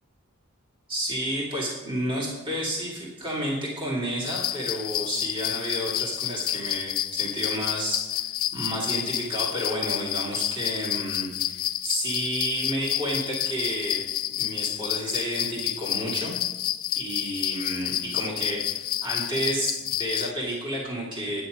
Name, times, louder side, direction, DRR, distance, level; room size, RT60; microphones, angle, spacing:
voice 1, 0.9-14.0 14.3-16.3 16.9-21.4, equal, 25° right, -5 dB, 2.7 m, -31 dB
sound 1, 4.3-20.3, left 13 dB, 40° left, 0.3 m, -30 dB
10.0 x 9.6 x 5.0 m, 1.1 s
head